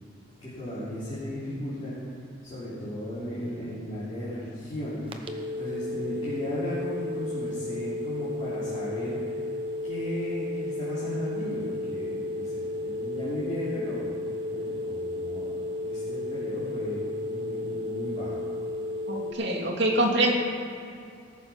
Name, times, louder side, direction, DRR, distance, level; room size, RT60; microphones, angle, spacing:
voice 1, 0.4-2.0 2.4-9.2 9.8-14.2 14.5-18.4, equal, 25° left, -11 dB, 3.4 m, -35 dB
sound 1, 5.1-19.3, left 2 dB, 25° right, 0.9 m, -33 dB
voice 2, 19.1-20.3, right 1 dB, 60° right, -2 dB, 2.2 m, -24 dB
18.5 x 7.4 x 5.7 m, 2.5 s
head